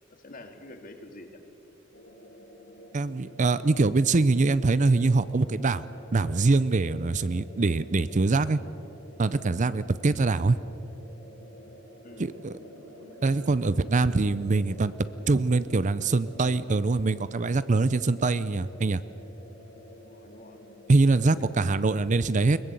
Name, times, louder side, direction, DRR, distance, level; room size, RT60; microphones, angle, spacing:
voice 1, 0.1-1.4 10.1-10.2 12.0-12.3 20.0-20.6 21.0-21.7, left 1 dB, 45° left, 6 dB, 2.4 m, -47 dB
sound 1, 1.9-21.9, equal, 65° left, 6.5 m, -50 dB
voice 2, 2.9-5.8 6.1-8.6 9.2-10.6 12.2-12.6 13.2-14.9 15.3-19.0 20.9-22.6, right 3 dB, 40° right, 16 dB, 0.5 m, -23 dB
sound 2, 12.1-18.1, right 1 dB, 70° right, 2.4 m, -51 dB
22.0 x 20.0 x 8.3 m, 2.9 s
head